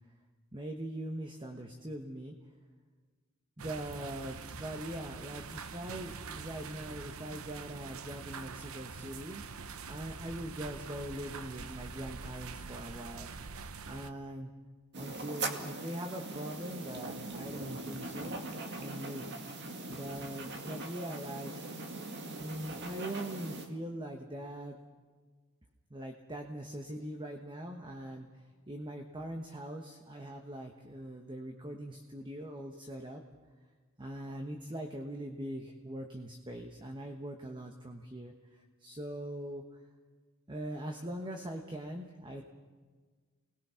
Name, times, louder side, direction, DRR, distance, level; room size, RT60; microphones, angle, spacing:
voice 1, 0.5-2.4 3.6-9.4 9.9-13.3 13.9-14.5 15.0-18.4 18.8-19.4 19.9-21.5 21.8-21.9 22.4-24.8 25.9-33.2 34.0-39.8 40.5-42.4, right 1 dB, 20° right, 4 dB, 1.2 m, -42 dB
sound 1, 3.6-14.1, right 5 dB, 75° right, 0.9 m, -45 dB
sound 2, 14.9-23.7, right 2 dB, 50° right, 2.1 m, -41 dB
29.0 x 20.0 x 5.8 m, 1.5 s
head